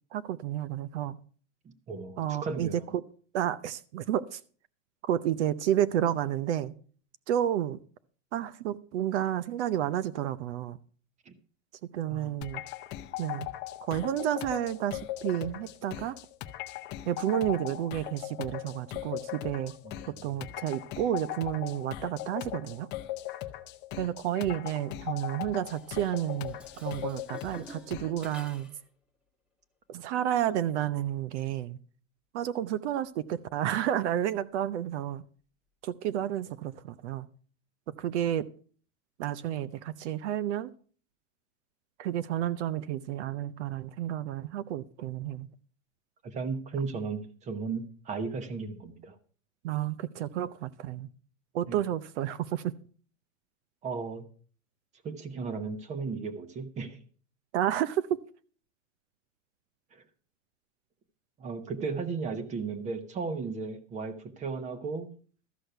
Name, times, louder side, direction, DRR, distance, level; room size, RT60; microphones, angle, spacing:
voice 1, 0.1-1.2 2.2-3.0 3.3-4.4 5.0-6.7 7.3-7.8 8.3-10.8 11.9-12.6 13.2-13.5 13.8-16.2 17.1-19.7 20.1-22.9 24.0-28.7 29.9-31.8 32.3-35.2 35.8-37.3 37.9-38.5 39.2-40.7 42.0-45.5 49.6-51.1 51.5-52.7 57.5-58.2, right 11 dB, 60° right, 0.7 m, -31 dB
voice 2, 1.6-2.8 11.3-11.4 12.1-12.3 19.8-20.3 46.2-49.1 51.7-51.8 53.8-54.3 55.0-57.0 59.9-60.0 61.4-65.1, right 4 dB, 20° right, 1.0 m, -35 dB
sound 1, 12.4-28.3, left 14 dB, 25° left, 0.8 m, -39 dB
Dishes pots and pans, 25.5-28.9, equal, 5° right, 1.3 m, -51 dB
13.5 x 6.3 x 6.7 m
supercardioid pair, 160°, 39 cm